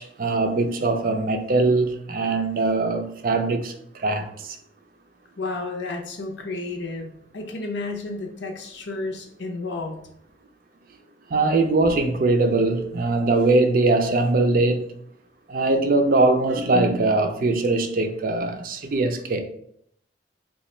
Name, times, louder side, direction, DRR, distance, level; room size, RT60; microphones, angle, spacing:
voice 1, 0.0-4.6 11.3-14.9 15.5-19.4, right 2 dB, 50° right, 0.4 m, -21 dB
voice 2, 5.4-10.0, left 3 dB, 85° left, 0.7 m, -32 dB
3.0 x 2.3 x 4.2 m
head